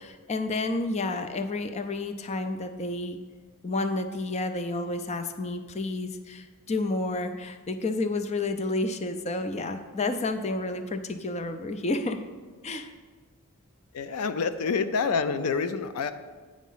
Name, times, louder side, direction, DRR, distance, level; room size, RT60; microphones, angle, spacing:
voice 1, 0.0-3.2 3.6-12.2 12.6-12.9, left 2 dB, 30° left, 8 dB, 0.4 m, -30 dB
voice 2, 13.9-16.1, left 5 dB, 90° left, 12 dB, 0.5 m, -27 dB
9.2 x 5.0 x 5.6 m, 1.4 s
head